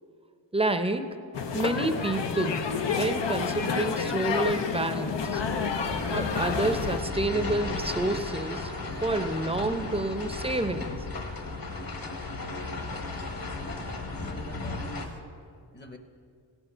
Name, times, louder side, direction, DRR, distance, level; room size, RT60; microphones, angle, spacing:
voice 1, 0.5-1.1 1.5-2.6 3.0-5.4 6.1-8.7 9.0-11.0, right 2 dB, 15° right, 8 dB, 0.7 m, -28 dB
sound 1, 1.3-7.0, left 5 dB, 85° left, 0.9 m, -29 dB
sound 2, 5.9-15.1, left 3 dB, 55° left, 1.5 m, -35 dB
voice 2, 13.5-15.2 15.7-16.0, equal, 25° left, 6 dB, 0.8 m, -46 dB
16.5 x 9.0 x 4.6 m, 2.3 s
wide cardioid pair, 100°, 42 cm